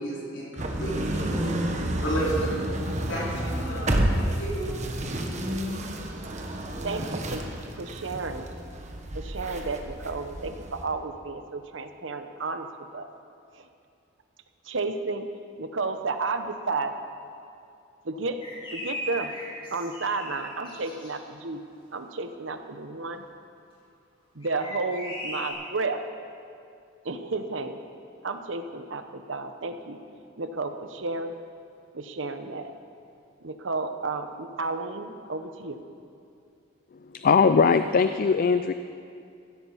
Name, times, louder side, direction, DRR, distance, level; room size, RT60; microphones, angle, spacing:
voice 1, 0.0-2.6 3.1-4.8 5.3-5.7, right 1 dB, 70° left, -6 dB, 4.6 m, -33 dB
sound 1, 0.6-10.8, right 1 dB, 40° right, 1.3 m, -30 dB
voice 2, 6.8-7.4 7.8-8.5 9.1-12.7 12.9-13.1 14.7-15.3 15.6-16.9 18.0-18.4 18.7-19.3 19.7-21.6 21.9-23.2 24.3-26.0 27.0-27.8 28.2-30.0 30.4-31.3 31.9-32.7 33.4-35.8, right 3 dB, 70° right, 8 dB, 1.0 m, -32 dB
sound 2, 18.4-21.1 24.4-25.5, left 1 dB, 30° left, 3.6 m, -38 dB
voice 3, 37.1-38.7, left 5 dB, 50° left, 10 dB, 0.4 m, -20 dB
15.5 x 12.5 x 5.7 m, 2.5 s
head